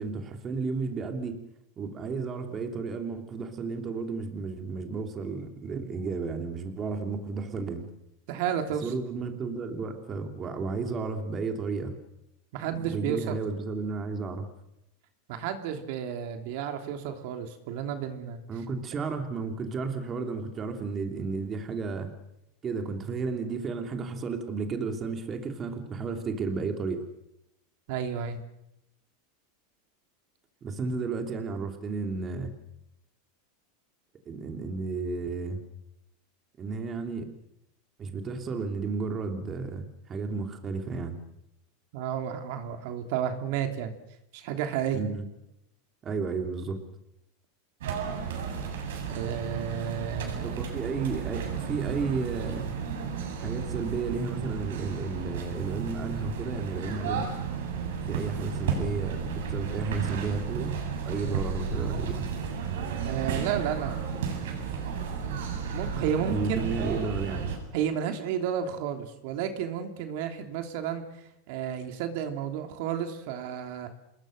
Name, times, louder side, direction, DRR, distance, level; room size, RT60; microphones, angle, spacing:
voice 1, 0.0-1.4 1.8-7.9 8.8-12.0 12.7-14.5 18.5-22.1 22.6-27.0 30.6-32.5 34.2-35.6 36.6-37.3 38.0-41.2 44.9-45.2 46.0-46.8 50.6-52.7 53.4-57.3 58.0-60.7 61.0-62.3 66.3-67.4, right 4 dB, 25° right, 5 dB, 2.9 m, -33 dB
voice 2, 8.3-8.9 12.5-13.4 15.3-18.4 27.9-28.4 41.9-43.9 44.3-45.1 49.1-50.6 63.0-64.0 65.7-66.6 67.7-71.0 71.5-73.9, right 8 dB, 60° right, 6 dB, 3.1 m, -32 dB
sound 1, 47.8-67.6, right 6 dB, 85° right, 7.7 m, -33 dB
27.5 x 21.5 x 6.6 m, 0.82 s
supercardioid pair, 150°, 0 cm